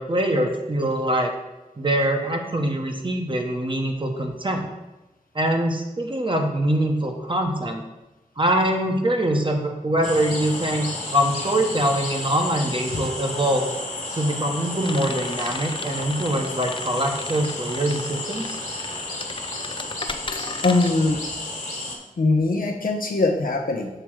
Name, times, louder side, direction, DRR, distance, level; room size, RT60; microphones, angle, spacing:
voice 1, 0.0-1.3 1.8-4.7 5.3-7.8 8.4-13.7 14.2-18.6, right 1 dB, 35° right, 3 dB, 1.1 m, -23 dB
sound 1, 10.0-22.0, left 2 dB, 55° left, 1.6 m, -32 dB
sound 2, 14.8-20.9, left 3 dB, 35° left, 0.4 m, -36 dB
voice 2, 20.3-21.2 22.2-23.9, left 3 dB, 80° left, 2 dB, 0.9 m, -22 dB
6.8 x 3.5 x 6.2 m, 1.0 s
wide cardioid pair, 55°, 14 cm